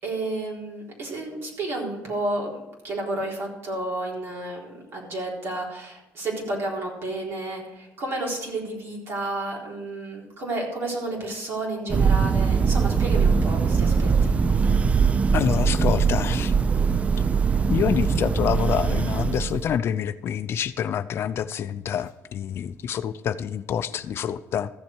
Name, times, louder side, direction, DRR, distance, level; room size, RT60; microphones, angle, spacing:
voice 1, 0.0-14.4, right 2 dB, 50° right, -2 dB, 4.1 m, -31 dB
Thunder, 11.9-19.8, right 5 dB, 25° right, 0.4 m, -21 dB
voice 2, 15.3-16.5 17.7-24.7, left 9 dB, 50° left, 13 dB, 0.5 m, -27 dB
14.5 x 7.4 x 4.6 m, 0.95 s
cardioid pair, 125°, 5 cm